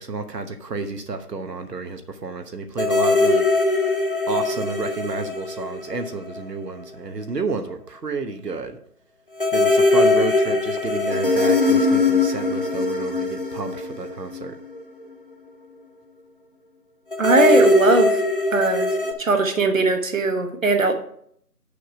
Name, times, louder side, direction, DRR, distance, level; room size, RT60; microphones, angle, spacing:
voice 1, 0.0-3.5 4.3-8.8 9.5-14.5, right 4 dB, 90° right, 6 dB, 1.1 m, -30 dB
sound 1, 2.8-6.5 6.8-6.9 9.4-14.8 17.1-19.1, left 3 dB, 35° left, 0.8 m, -21 dB
voice 2, 17.2-18.2 18.5-18.9 19.2-20.9, right 3 dB, 55° right, 5 dB, 1.3 m, -19 dB
6.4 x 5.9 x 5.5 m, 0.66 s
figure-of-eight pair, 170°, 47 cm